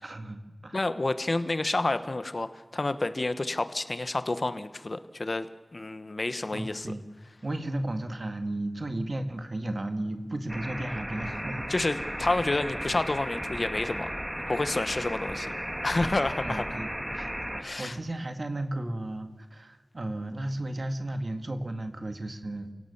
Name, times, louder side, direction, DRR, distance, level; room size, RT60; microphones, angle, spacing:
voice 1, 0.0-0.8 6.5-7.0 7.4-11.9 16.4-17.3 17.6-22.7, right 1 dB, 60° right, 7 dB, 2.1 m, -34 dB
voice 2, 0.7-5.5 5.7-6.9 11.7-14.1 14.5-15.5 15.8-16.8 17.6-18.0, left 2 dB, 55° left, 11 dB, 1.1 m, -29 dB
sound 1, 10.5-17.6, equal, 10° right, 1.9 m, -35 dB
29.5 x 17.5 x 7.2 m, 1.4 s
wide cardioid pair, 60°, 0 cm